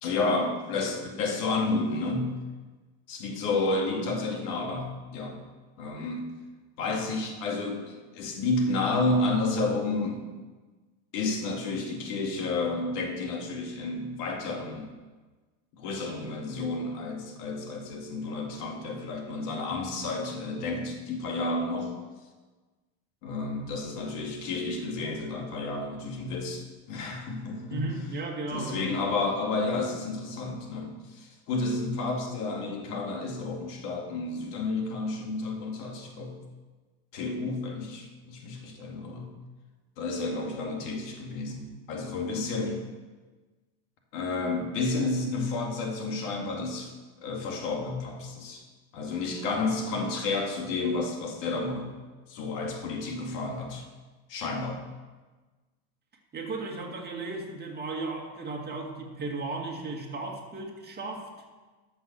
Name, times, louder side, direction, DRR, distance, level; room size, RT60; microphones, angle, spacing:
voice 1, 0.0-2.3 3.1-5.4 5.8-6.3 6.8-10.2 11.1-14.9 15.7-21.9 23.2-27.9 28.5-36.3 37.1-39.3 40.0-42.8 44.1-46.9 47.2-48.6 48.9-51.9 52.3-53.8 54.3-54.8, left 3 dB, 85° left, 1 dB, 2.3 m, -31 dB
voice 2, 27.7-28.9 56.3-61.3, right 3 dB, 20° right, 0 dB, 2.0 m, -35 dB
12.5 x 5.9 x 6.7 m, 1.3 s
supercardioid pair, 130°, 46 cm